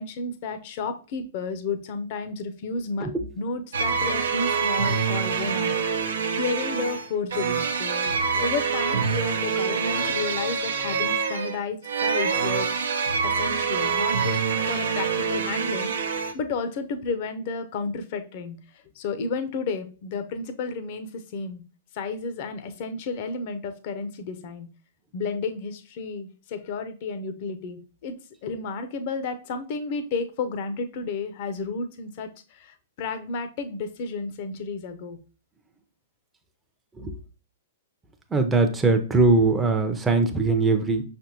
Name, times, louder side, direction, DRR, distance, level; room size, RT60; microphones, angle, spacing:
voice 1, 0.0-3.1 3.4-5.8 6.3-8.1 8.4-12.7 13.2-14.4 14.7-21.6 21.9-24.7 25.1-28.2 28.4-35.2, left 4 dB, 50° left, 9 dB, 0.6 m, -32 dB
sound 1, 3.7-16.3, right 5 dB, 75° right, 0.7 m, -26 dB
voice 2, 38.3-41.0, right 3 dB, 10° right, 5 dB, 0.6 m, -21 dB
5.6 x 3.4 x 2.8 m, 0.36 s
hypercardioid pair, 115°, 0 cm